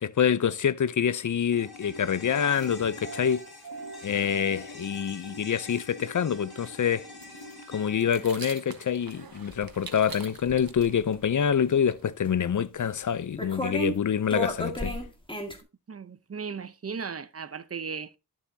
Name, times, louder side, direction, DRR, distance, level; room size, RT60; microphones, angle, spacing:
voice 1, 0.0-3.4 4.0-7.1 7.7-15.0, left 8 dB, 50° left, 0.5 m, -26 dB
sound 1, 1.5-10.0 10.3-10.4, left 2 dB, 65° left, 4.7 m, -46 dB
sound 2, 2.3-4.7 5.0-5.1 5.3-5.4 5.6-5.9 6.2-12.1, right 5 dB, 60° right, 1.4 m, -45 dB
sound 3, 9.5-9.7 10.0-11.0 12.3-12.4 13.4-14.0 14.3-15.6, equal, 10° left, 1.8 m, -32 dB
voice 2, 15.9-18.2, right 6 dB, 35° right, 0.7 m, -36 dB
11.0 x 6.9 x 2.7 m
wide cardioid pair, 75°, 40 cm